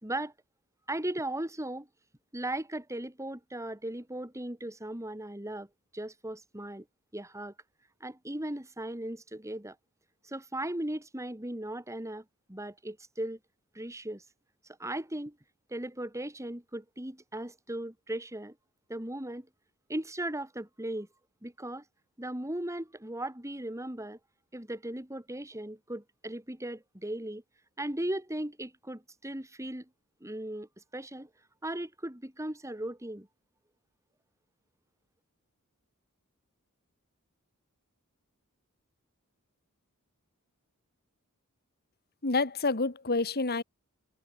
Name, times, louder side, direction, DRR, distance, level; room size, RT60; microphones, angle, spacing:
voice 1, 0.0-0.3 0.9-1.9 2.3-5.7 5.9-6.8 7.1-7.5 8.0-9.7 10.2-13.4 13.7-14.2 14.8-15.4 15.7-18.5 18.9-19.5 19.9-21.1 21.4-21.8 22.2-24.2 24.5-27.4 27.8-29.9 30.2-31.3 31.6-33.3, right 1 dB, 15° right, 3.2 m, -37 dB
voice 2, 42.2-43.6, left 3 dB, 45° left, 1.9 m, -28 dB
head